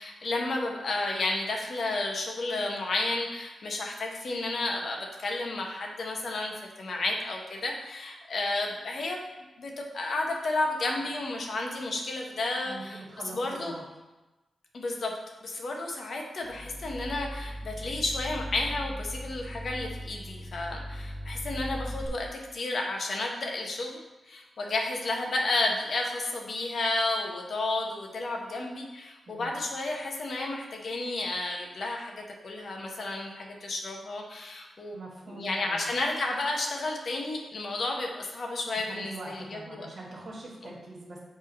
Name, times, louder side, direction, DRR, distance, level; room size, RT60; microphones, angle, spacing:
voice 1, 0.0-9.2 9.6-13.0 13.3-13.7 14.7-15.1 15.4-24.0 24.3-35.0 35.3-39.9 40.6-40.7, left 2 dB, 65° left, 1 dB, 1.2 m, -32 dB
voice 2, 12.6-13.8 29.3-29.5 34.9-35.9 38.9-41.2, right 2 dB, 55° right, -5 dB, 1.7 m, -43 dB
sound 1, 16.4-22.1, equal, 5° left, 1.1 m, -38 dB
6.5 x 3.7 x 5.4 m, 1.1 s
cardioid pair, 60°, 0 cm